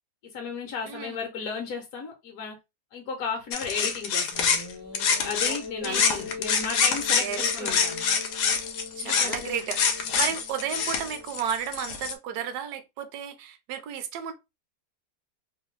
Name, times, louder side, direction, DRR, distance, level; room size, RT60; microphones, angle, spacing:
voice 1, 0.3-2.6 2.9-4.6 4.9-8.2 9.0-9.6 10.1-10.3, left 5 dB, 70° left, 1.1 m, -34 dB
voice 2, 0.9-1.2 5.5-6.3 7.1-7.8 9.0-14.3, right 9 dB, 80° right, 1.1 m, -33 dB
sound 1, 3.5-5.6 5.8-12.1, left 6 dB, 90° left, 1.2 m, -26 dB
sound 2, 4.3-11.7, left 5 dB, 20° left, 0.4 m, -41 dB
3.0 x 2.2 x 3.0 m
omnidirectional pair, 1.7 m